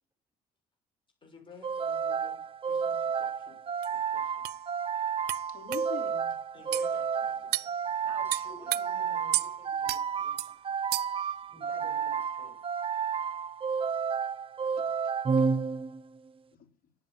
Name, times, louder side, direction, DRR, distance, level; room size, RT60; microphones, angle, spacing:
voice 1, 1.2-2.4 2.7-3.6 3.9-4.5 6.5-7.8, left 5 dB, 30° left, 2 dB, 6.4 m, -54 dB
sound 1, 1.6-16.2, right 6 dB, 30° right, 0.7 m, -31 dB
sound 2, 3.8-3.9 4.4-4.6 5.3-5.4 5.7-5.9 6.7-6.9 7.5-7.7 8.3-8.8 9.3-9.5 9.9-10.0 10.4-10.5 10.9-11.2, right 17 dB, 75° right, 0.5 m, -31 dB
voice 2, 5.5-6.3 9.0-9.3 14.7-15.5 16.5-16.7, left 7 dB, 60° left, 3 dB, 3.7 m, -45 dB
voice 3, 8.0-11.0 11.5-12.5, equal, 10° right, 4 dB, 6.7 m, -53 dB
11.0 x 8.4 x 9.9 m, 0.42 s
cardioid pair, 110°, 17 cm